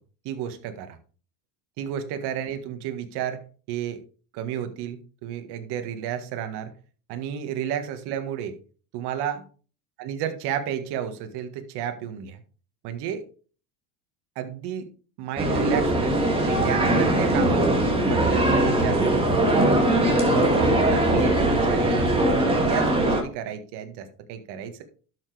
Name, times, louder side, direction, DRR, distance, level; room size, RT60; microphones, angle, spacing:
voice 1, 0.2-1.0 1.8-3.4 3.7-4.0 4.3-6.7 7.1-8.6 8.9-9.4 10.0-12.4 12.8-13.2 14.3-14.9 15.2-16.2 16.4-24.8, right 9 dB, 55° right, 7 dB, 1.7 m, -32 dB
sound 1, 15.4-23.2, right 1 dB, 10° right, 2.4 m, -21 dB
12.0 x 6.2 x 3.4 m, 0.39 s
supercardioid pair, 125°, 47 cm